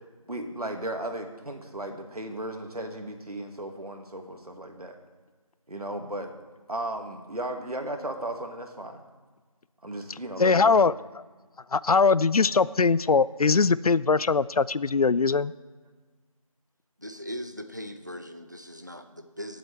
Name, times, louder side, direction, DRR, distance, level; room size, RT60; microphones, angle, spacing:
voice 1, 0.3-5.0 5.7-6.3 6.7-9.0 9.8-10.9, right 1 dB, 85° right, 4 dB, 1.9 m, -35 dB
voice 2, 10.4-10.9 11.7-15.5, left 4 dB, 85° left, 19 dB, 0.4 m, -21 dB
voice 3, 17.0-19.6, equal, 30° right, 8 dB, 0.6 m, -39 dB
22.0 x 7.9 x 3.3 m, 1.4 s
figure-of-eight pair, 175°, 19 cm